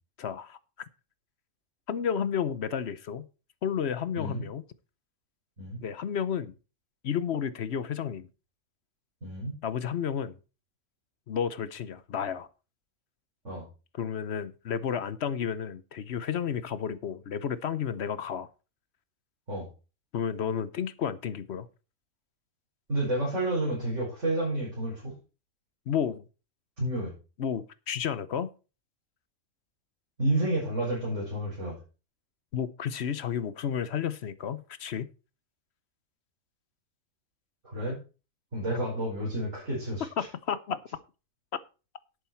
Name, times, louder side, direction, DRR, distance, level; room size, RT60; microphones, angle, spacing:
voice 1, 0.2-0.6 1.9-3.3 3.6-4.6 5.8-6.5 7.0-8.3 9.6-10.4 11.3-12.5 13.9-18.5 20.1-21.7 25.9-26.2 27.4-28.5 32.5-35.1 40.0-40.8, left 8 dB, 60° left, 1.0 m, -31 dB
voice 2, 9.2-9.6 13.4-13.7 19.5-19.7 22.9-25.1 26.8-27.1 30.2-31.8 37.6-38.0 38.5-40.1, right 1 dB, 70° right, 6.0 m, -30 dB
11.0 x 8.5 x 4.4 m
omnidirectional pair, 1.3 m